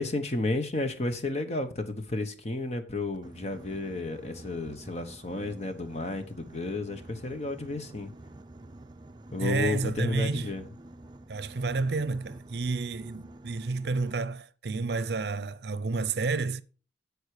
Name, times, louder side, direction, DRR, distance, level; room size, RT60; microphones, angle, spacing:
voice 1, 0.0-8.1 9.3-10.6, left 2 dB, 40° left, 1.1 m, -32 dB
Boat Water vehicle, 3.1-14.1, right 1 dB, 25° right, 0.5 m, -49 dB
voice 2, 9.4-10.5 11.3-16.6, right 3 dB, 70° right, 0.6 m, -30 dB
13.0 x 4.8 x 4.9 m
head